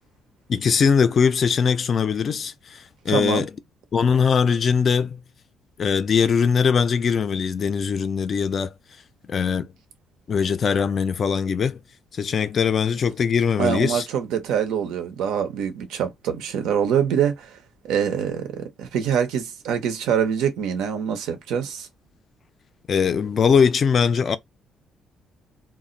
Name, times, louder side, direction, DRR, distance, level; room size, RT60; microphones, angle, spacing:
voice 1, 0.5-3.5 3.9-5.2 5.8-8.7 9.3-9.7 10.3-11.8 12.1-14.1 22.9-24.4, left 6 dB, 35° left, 0.3 m, -21 dB
voice 2, 3.1-3.4 13.6-17.6 17.8-21.9, right 8 dB, 90° right, 0.7 m, -24 dB
2.4 x 2.1 x 3.8 m
cardioid pair, 175°, 0 cm